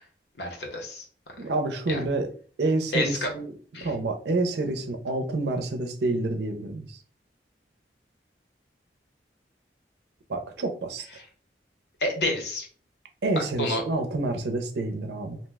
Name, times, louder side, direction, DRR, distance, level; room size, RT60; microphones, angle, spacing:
voice 1, 0.4-1.0 1.9-2.0 2.9-3.3 3.7-3.9 12.0-12.7 13.6-13.8, left 1 dB, 70° left, 2 dB, 0.8 m, -28 dB
voice 2, 1.4-2.3 2.6-3.5 3.8-7.0 10.3-11.1 13.2-15.4, right 2 dB, 75° right, 5 dB, 0.5 m, -28 dB
2.7 x 2.1 x 3.3 m, 0.44 s
head